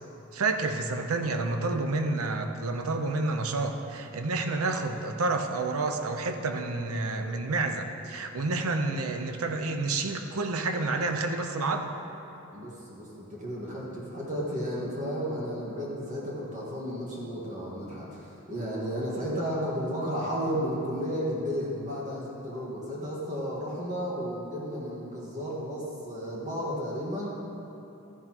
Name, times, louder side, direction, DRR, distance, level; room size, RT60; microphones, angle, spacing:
voice 1, 0.3-11.9, right 3 dB, 85° right, 5 dB, 0.8 m, -29 dB
voice 2, 12.5-27.3, equal, 35° right, -5 dB, 1.7 m, -33 dB
13.5 x 10.5 x 3.0 m, 2.9 s
head